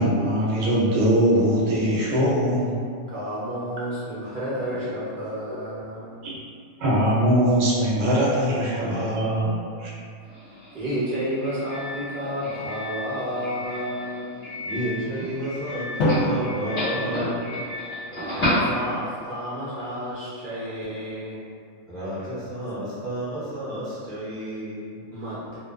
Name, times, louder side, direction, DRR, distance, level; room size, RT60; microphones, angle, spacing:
voice 1, 0.0-2.8 4.7-4.8 5.5-5.6 6.2-6.4 6.8-9.9, equal, 70° right, -5 dB, 0.9 m, -22 dB
voice 2, 3.1-6.3 10.7-14.4 18.1-21.5 22.5-22.6 25.1-25.6, equal, 55° right, -10 dB, 0.5 m, -31 dB
Doorbell, 10.2-19.3, left 1 dB, 25° left, 1.0 m, -32 dB
voice 3, 14.7-17.6 21.9-25.0, equal, 5° left, -12 dB, 0.3 m, -31 dB
Drum, 16.0-18.1, equal, 65° left, 0.8 m, -27 dB
2.5 x 2.2 x 2.3 m, 2.2 s
omnidirectional pair, 1.4 m